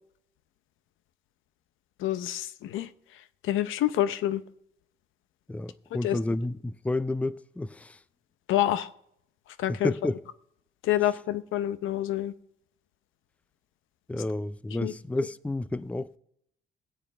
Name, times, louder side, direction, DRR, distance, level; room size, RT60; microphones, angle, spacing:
voice 1, 2.0-2.9 3.4-4.4 6.0-6.2 8.5-8.9 9.6-9.9 10.8-12.3 14.8-14.9, left 13 dB, 85° left, 0.8 m, -27 dB
voice 2, 5.5-8.0 9.7-10.2 14.1-16.2, left 2 dB, 5° left, 0.5 m, -31 dB
16.5 x 5.8 x 8.9 m
cardioid pair, 90°, 20 cm